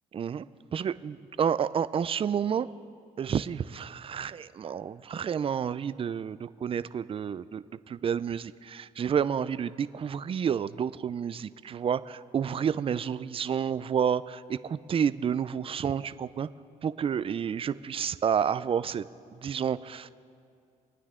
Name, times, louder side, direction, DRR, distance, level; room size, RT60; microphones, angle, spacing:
voice 1, 0.1-0.5 0.7-2.7 3.2-16.5 16.8-19.1 19.3-20.1, right 7 dB, 40° right, 15 dB, 0.5 m, -30 dB
25.0 x 9.5 x 3.7 m, 2.4 s
supercardioid pair, 75°, 15 cm